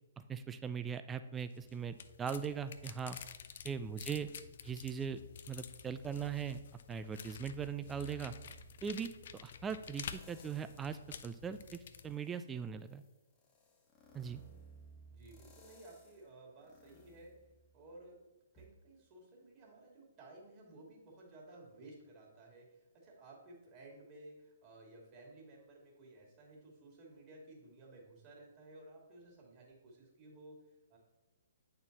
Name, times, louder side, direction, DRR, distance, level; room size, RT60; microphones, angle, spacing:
voice 1, 0.3-3.2 3.6-4.3 4.6-5.2 5.5-6.6 6.9-8.3 8.8-9.1 9.4-11.0 11.2-13.0 14.1-14.4, right 7 dB, 15° right, 11 dB, 0.3 m, -40 dB
sound 1, 1.4-12.2, left 8 dB, 55° left, 0.4 m, -50 dB
voice 2, 3.7-4.5 15.1-17.3 17.7-18.2 18.5-31.0, right 2 dB, 30° right, -3 dB, 2.5 m, -56 dB
sound 2, 7.9-9.3 9.9-10.9 11.4-18.1 18.6-18.7, right 3 dB, 25° left, 1.3 m, -60 dB
8.6 x 4.4 x 4.1 m, 1.0 s
figure-of-eight pair, 125°, 0 cm